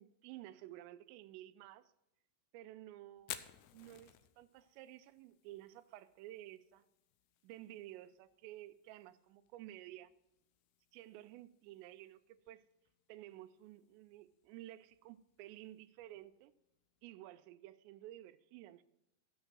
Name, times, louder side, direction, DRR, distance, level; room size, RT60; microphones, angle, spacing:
voice 1, 0.0-1.9 2.5-3.5 3.7-6.8 7.4-10.1 10.9-12.6 13.1-16.5 17.0-18.8, right 14 dB, 80° right, 2.7 m, -53 dB
Fire, 3.2-17.0, left 13 dB, 80° left, 2.3 m, -58 dB
13.0 x 7.2 x 6.1 m
omnidirectional pair, 5.3 m